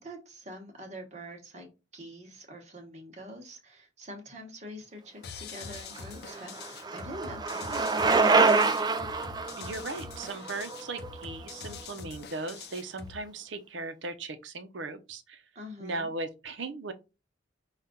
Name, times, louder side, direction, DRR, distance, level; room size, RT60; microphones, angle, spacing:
voice 1, 0.0-1.7 1.9-8.6 15.5-16.1, equal, 35° right, 1.1 m, -45 dB
sound 1, 5.2-13.2, left 6 dB, 55° left, 0.5 m, -45 dB
Bicycle, 5.8-11.7, right 4 dB, 20° right, 0.4 m, -27 dB
voice 2, 9.6-15.4 15.8-16.9, right 3 dB, 80° right, 0.7 m, -38 dB
5.6 x 2.4 x 3.7 m
head